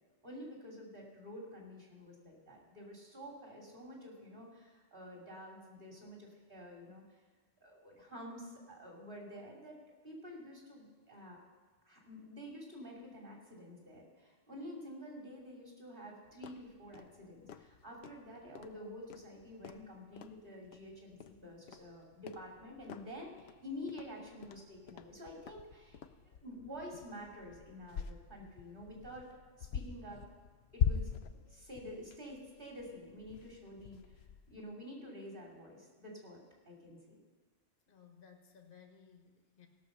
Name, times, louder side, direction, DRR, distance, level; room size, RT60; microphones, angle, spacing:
voice 1, 0.2-7.0 7.6-9.8 10.0-11.4 11.9-29.3 29.6-30.2 30.7-31.1 31.5-34.0 34.5-36.4 36.7-37.2, left 1 dB, 45° right, -2 dB, 2.9 m, -49 dB
sound 1, 16.3-34.6, left 8 dB, 65° left, 0.8 m, -43 dB
voice 2, 37.9-39.7, left 7 dB, 50° left, 4 dB, 1.3 m, -59 dB
16.5 x 6.2 x 6.5 m, 1.3 s
omnidirectional pair, 1.2 m